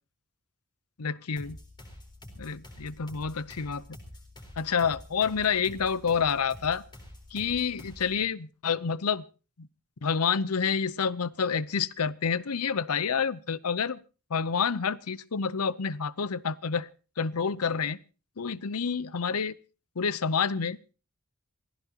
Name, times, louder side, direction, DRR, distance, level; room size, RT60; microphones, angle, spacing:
voice 1, 1.0-1.6 2.4-3.8 4.6-6.8 7.3-9.2 9.6-9.7 10.0-14.0 14.3-16.9 17.2-18.0 18.4-19.6 20.0-20.8, left 6 dB, 85° left, 0.7 m, -28 dB
sound 1, 1.4-8.2, left 1 dB, 20° left, 4.1 m, -48 dB
26.5 x 15.5 x 2.9 m
head